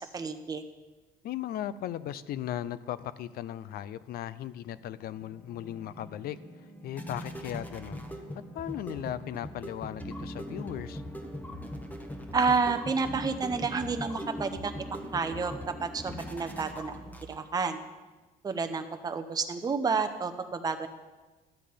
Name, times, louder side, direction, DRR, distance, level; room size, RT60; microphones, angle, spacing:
voice 1, 0.1-0.6 12.3-15.5 15.8-17.0 17.3-17.8 18.4-20.9, right 4 dB, 20° right, 7 dB, 0.7 m, -30 dB
voice 2, 1.2-6.4 6.8-8.0 8.5-11.0, left 11 dB, 65° left, 16 dB, 0.5 m, -37 dB
sound 1, 5.0-17.7, equal, 10° left, 1.1 m, -41 dB
11.5 x 7.4 x 5.1 m, 1.2 s
cardioid pair, 110°, 17 cm